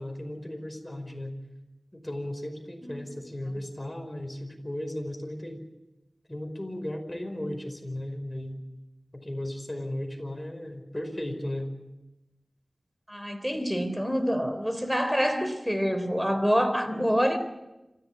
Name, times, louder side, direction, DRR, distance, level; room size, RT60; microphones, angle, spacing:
voice 1, 0.0-1.3 1.9-5.6 6.3-8.6 9.1-11.7, left 1 dB, 20° left, 5 dB, 5.3 m, -35 dB
voice 2, 13.1-17.4, equal, 5° right, 9 dB, 3.5 m, -26 dB
27.0 x 15.5 x 8.6 m, 0.99 s
wide cardioid pair, 55°, 0 cm